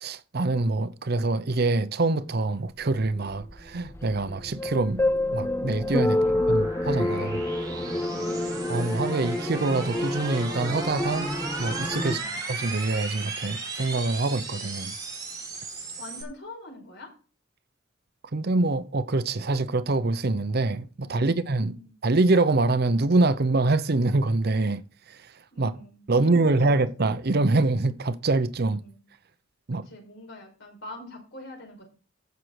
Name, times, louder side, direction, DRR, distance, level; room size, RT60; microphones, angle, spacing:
voice 1, 0.0-5.0 5.3-6.2 6.5-7.4 8.7-11.3 11.6-12.2 12.5-15.0 18.3-21.8 22.0-24.8 25.1-25.2 25.6-25.7 26.1-28.8 29.7-29.9, right 2 dB, 50° right, 0.7 m, -25 dB
sound 1, 2.8-16.2, right 3 dB, 20° right, 4.2 m, -36 dB
sound 2, 4.3-12.2, left 1 dB, 10° left, 0.4 m, -28 dB
voice 2, 6.0-6.8 7.9-8.6 12.0-12.4 16.0-17.1 21.0-21.9 25.5-26.8 28.7-29.0 29.7-31.9, left 2 dB, 60° left, 5.2 m, -45 dB
15.0 x 6.5 x 4.8 m
head